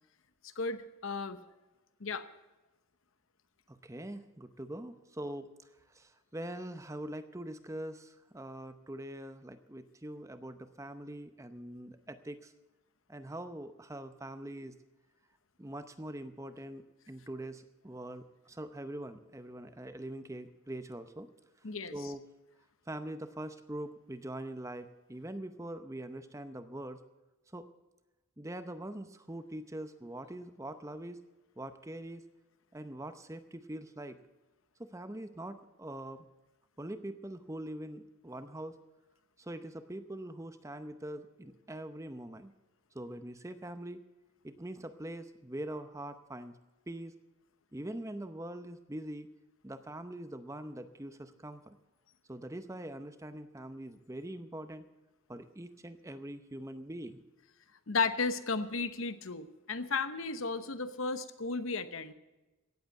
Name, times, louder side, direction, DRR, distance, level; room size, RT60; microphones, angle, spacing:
voice 1, 0.6-1.4 2.0-2.3 21.6-21.9 57.9-62.1, left 4 dB, 70° left, 11 dB, 0.9 m, -34 dB
voice 2, 3.7-5.5 5.9-12.5 13.1-14.7 15.6-21.3 21.9-22.2 22.9-27.0 27.5-27.7 28.4-31.2 31.6-32.3 32.7-34.2 34.8-36.3 36.8-38.8 39.4-42.5 42.9-44.0 44.4-46.5 46.9-47.2 47.7-49.3 49.6-51.8 52.3-54.9 55.3-57.2, right 1 dB, 15° right, 10 dB, 0.7 m, -43 dB
17.0 x 7.9 x 7.9 m, 1.1 s
head